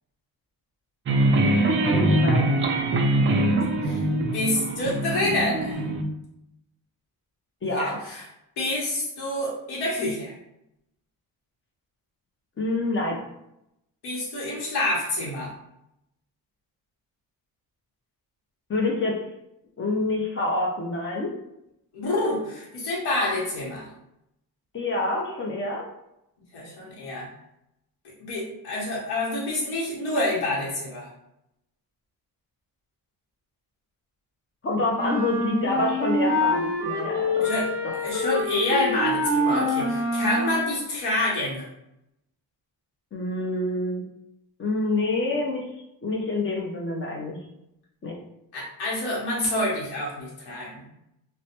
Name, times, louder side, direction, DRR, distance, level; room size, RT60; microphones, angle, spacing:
sound 1, 1.1-6.0, right 1 dB, 35° right, 0.4 m, -23 dB
voice 1, 1.9-2.5 7.6-8.0 12.6-13.2 18.7-19.2 19.8-21.3 24.7-25.9 34.6-37.5 43.1-44.0 44.6-45.7 46.0-47.4 48.0-48.1, left 2 dB, 30° left, -1 dB, 0.6 m, -27 dB
voice 2, 4.3-5.8 7.6-8.2 8.6-10.3 14.0-15.5 21.9-23.9 26.5-27.3 28.2-31.1 37.4-37.7 38.0-41.6 48.5-50.9, left 1 dB, 70° left, -5 dB, 1.0 m, -27 dB
sound 2, 34.9-40.7, left 1 dB, 5° left, 1.0 m, -26 dB
3.1 x 2.1 x 2.8 m, 0.83 s
cardioid pair, 115°, 40 cm